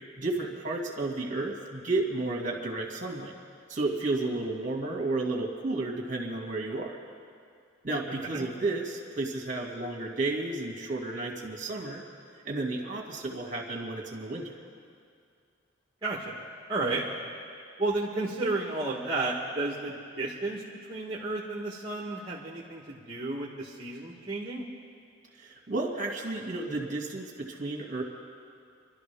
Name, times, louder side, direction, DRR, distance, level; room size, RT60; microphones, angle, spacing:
voice 1, 0.2-3.3 3.7-6.9 7.8-12.0 12.4-14.5 25.3-28.0, right 2 dB, 35° right, 0 dB, 2.1 m, -32 dB
voice 2, 16.0-16.4 16.7-17.0 17.8-20.6 20.9-24.7, right 2 dB, 20° right, -4 dB, 1.3 m, -32 dB
28.5 x 12.0 x 3.5 m, 2.3 s
head